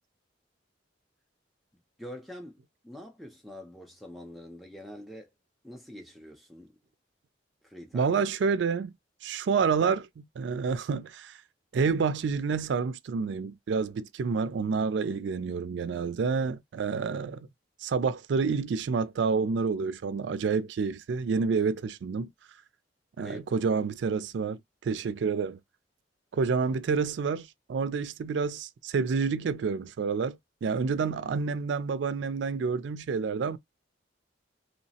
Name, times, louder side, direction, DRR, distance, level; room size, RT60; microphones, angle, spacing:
voice 1, 2.0-5.3 5.6-6.8 7.6-8.2 23.2-23.4, equal, ahead, 0.4 m, -45 dB
voice 2, 7.9-8.9 9.2-11.4 11.7-17.5 17.8-22.3 23.2-25.6 26.3-33.6, right 5 dB, 70° right, 0.3 m, -29 dB
3.0 x 2.0 x 2.7 m
head